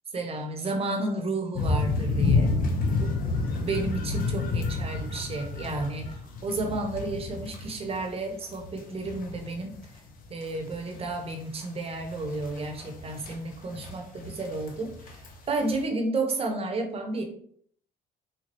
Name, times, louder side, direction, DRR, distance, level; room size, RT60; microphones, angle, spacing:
voice 1, 0.1-2.6 3.0-3.2 3.5-9.8 10.3-15.2 15.5-17.2, right 2 dB, 35° right, 3 dB, 0.8 m, -32 dB
sound 1, 1.5-8.2 8.5-11.3 11.6-11.7 11.9-15.3 15.7-15.8, left 3 dB, 55° left, 0.8 m, -30 dB
4.4 x 2.3 x 3.0 m, 0.62 s
cardioid pair, 110°, 17 cm